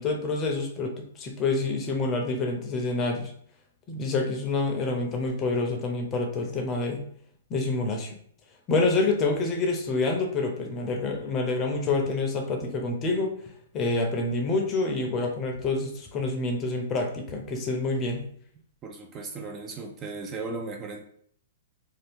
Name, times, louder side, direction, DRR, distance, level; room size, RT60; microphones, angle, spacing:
voice 1, 0.0-3.3 3.9-7.0 7.5-8.2 8.7-13.3 13.7-18.2, left 3 dB, 25° left, 3 dB, 0.6 m, -27 dB
voice 2, 18.8-21.0, right 3 dB, 25° right, 3 dB, 0.4 m, -36 dB
2.7 x 2.3 x 3.4 m, 0.62 s
hypercardioid pair, 145°, 0 cm